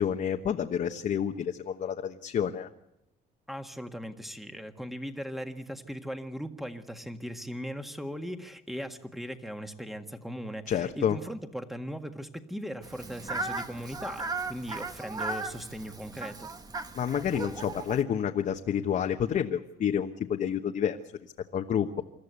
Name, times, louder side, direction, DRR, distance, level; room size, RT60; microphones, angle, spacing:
voice 1, 0.0-2.7 10.7-11.2 16.9-22.0, left 8 dB, 50° left, 4 dB, 1.2 m, -29 dB
voice 2, 3.5-16.5, equal, ahead, 6 dB, 1.7 m, -38 dB
Fowl, 12.8-18.0, right 3 dB, 20° right, 1.4 m, -37 dB
26.0 x 13.5 x 8.3 m, 0.85 s
cardioid pair, 110°, 17 cm